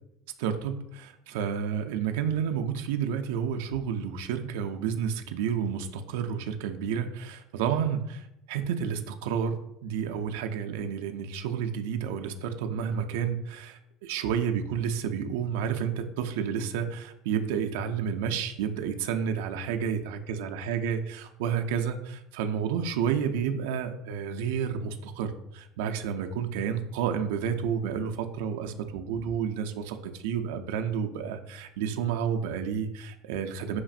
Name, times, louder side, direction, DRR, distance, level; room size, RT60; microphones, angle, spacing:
voice 1, 0.4-9.6 9.8-33.8, right 7 dB, 70° right, 6 dB, 0.3 m, -30 dB
5.7 x 2.5 x 2.4 m, 0.81 s
hypercardioid pair, 70°, 0 cm